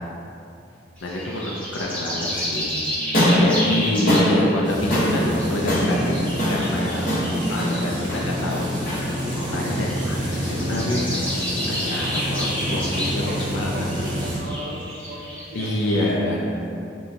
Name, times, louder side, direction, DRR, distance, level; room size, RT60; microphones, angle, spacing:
voice 1, 1.0-3.0 3.3-6.2 6.5-7.1 7.5-11.0 11.3-11.4 11.7-13.9 15.5-16.6, left 1 dB, 85° left, -2 dB, 0.5 m, -27 dB
sound 1, 1.0-16.1, equal, 10° left, 0.9 m, -32 dB
sound 2, 3.0-11.3, equal, 50° left, 1.1 m, -24 dB
sound 3, 4.6-14.4, equal, 25° right, 0.8 m, -28 dB
voice 2, 10.6-10.9 13.2-16.2, equal, 55° right, -3 dB, 0.5 m, -37 dB
6.6 x 2.3 x 2.7 m, 2.7 s
head